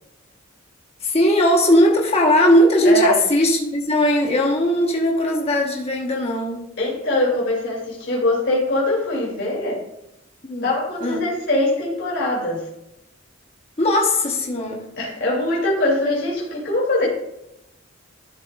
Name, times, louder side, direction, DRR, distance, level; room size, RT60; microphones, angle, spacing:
voice 1, 1.0-6.7 10.4-10.7 11.0-11.2 13.8-14.9, left 1 dB, 30° left, -1 dB, 1.3 m, -18 dB
voice 2, 2.8-3.2 6.8-9.8 10.6-12.6 15.0-17.1, left 1 dB, 60° left, -4 dB, 3.1 m, -22 dB
12.0 x 7.4 x 2.5 m, 0.86 s
head